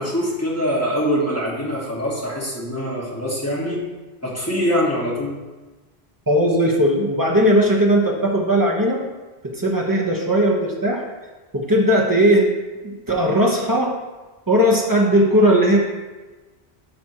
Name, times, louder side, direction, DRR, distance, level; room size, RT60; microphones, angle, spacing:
voice 1, 0.0-3.8 4.2-5.3, equal, 15° left, -5 dB, 1.8 m, -23 dB
voice 2, 6.3-9.0 9.4-11.0 11.5-12.5 12.8-13.9 14.5-15.8, equal, 20° right, -1 dB, 1.0 m, -18 dB
12.0 x 5.1 x 3.0 m, 1.2 s
omnidirectional pair, 1.1 m